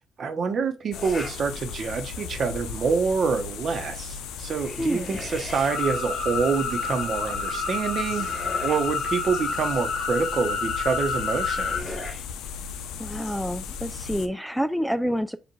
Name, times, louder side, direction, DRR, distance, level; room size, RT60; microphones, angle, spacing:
voice 1, 0.2-11.9, right 5 dB, 55° right, 0.9 m, -27 dB
sound 1, 0.9-14.3, left 6 dB, 90° left, 0.5 m, -37 dB
sound 2, 0.9-1.4 1.9-2.4 4.4-5.7 7.5-8.9 10.9-12.2, left 2 dB, 25° left, 2.2 m, -40 dB
voice 2, 4.8-5.1 13.0-15.4, equal, ahead, 0.3 m, -28 dB
sound 3, 5.7-11.8, left 5 dB, 65° left, 1.6 m, -29 dB
6.7 x 2.5 x 3.1 m
cardioid pair, 90°, 0 cm